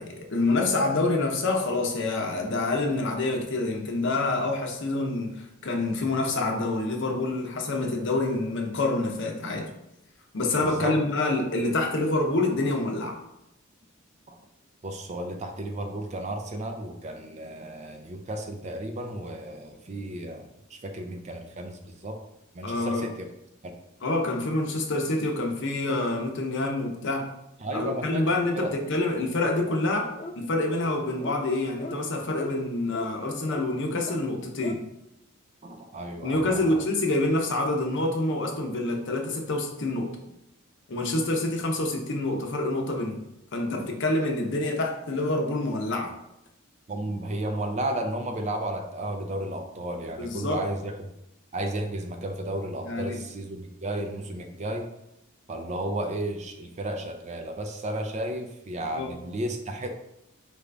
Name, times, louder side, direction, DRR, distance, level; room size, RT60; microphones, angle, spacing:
voice 1, 0.0-9.7 10.3-13.2 22.6-23.1 24.0-27.3 27.7-30.1 30.4-34.8 36.2-40.1 40.9-43.2 43.5-46.1 50.2-50.6 52.9-53.2 58.9-59.1, left 2 dB, 60° left, 2 dB, 0.7 m, -27 dB
voice 2, 10.6-11.0 14.3-14.4 14.8-22.2 22.5-23.3 23.6-23.7 27.6-28.7 35.6-36.8 46.9-51.1 51.5-54.9 55.5-60.0, right 1 dB, 35° right, 4 dB, 0.5 m, -33 dB
sound 1, 29.7-29.9 30.2-30.4 30.7-30.9 31.2-31.4 31.8-32.0 32.4-32.5 32.9-33.1 33.5-33.7 34.0-34.2 34.6-34.8, left 2 dB, 30° left, 0.3 m, -37 dB
4.9 x 2.5 x 3.3 m, 0.85 s
head